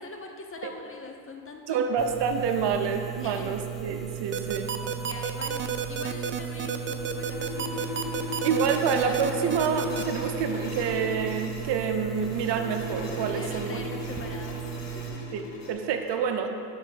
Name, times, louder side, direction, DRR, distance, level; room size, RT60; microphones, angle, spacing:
voice 1, 0.0-2.0 3.2-3.6 5.0-7.9 13.3-15.2, left 3 dB, 30° left, 3 dB, 0.8 m, -42 dB
voice 2, 1.7-4.8 8.4-13.8 15.3-15.4 15.7-16.5, right 6 dB, 65° right, 6 dB, 0.8 m, -27 dB
sound 1, 2.0-15.1, right 11 dB, ahead, 0.7 m, -37 dB
sound 2, 4.3-10.0, right 7 dB, 30° right, 0.3 m, -31 dB
sound 3, 6.4-15.7, left 5 dB, 65° left, 1.3 m, -38 dB
6.8 x 3.9 x 6.5 m, 2.4 s
supercardioid pair, 85°, 45 cm